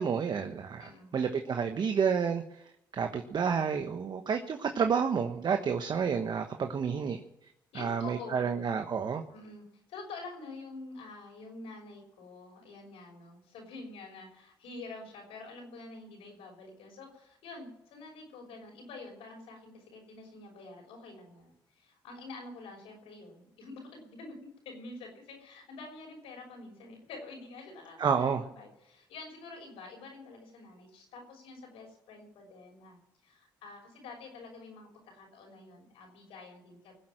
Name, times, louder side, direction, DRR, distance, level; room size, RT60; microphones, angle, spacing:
voice 1, 0.0-2.4 2.9-7.2 7.7-9.2 28.0-28.4, right 6 dB, 50° right, 6 dB, 1.2 m, -30 dB
voice 2, 0.8-1.4 6.5-6.7 7.7-8.6 9.3-24.3 24.6-36.9, left 3 dB, 80° left, 1 dB, 6.1 m, -47 dB
20.5 x 7.9 x 7.6 m, 0.81 s
supercardioid pair, 60°, 9 cm